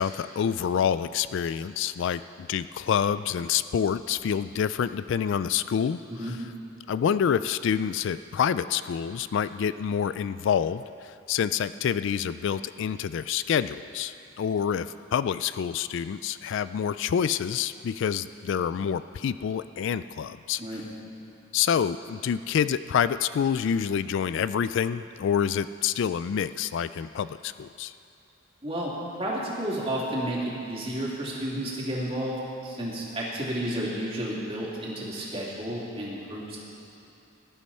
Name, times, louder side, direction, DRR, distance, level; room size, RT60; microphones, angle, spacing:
voice 1, 0.0-6.0 6.9-20.6 21.5-27.9, left 8 dB, 65° left, 14 dB, 0.3 m, -27 dB
voice 2, 29.2-32.4 32.6-36.6, right 1 dB, 30° right, -5 dB, 2.9 m, -31 dB
19.0 x 11.5 x 4.3 m, 2.7 s
head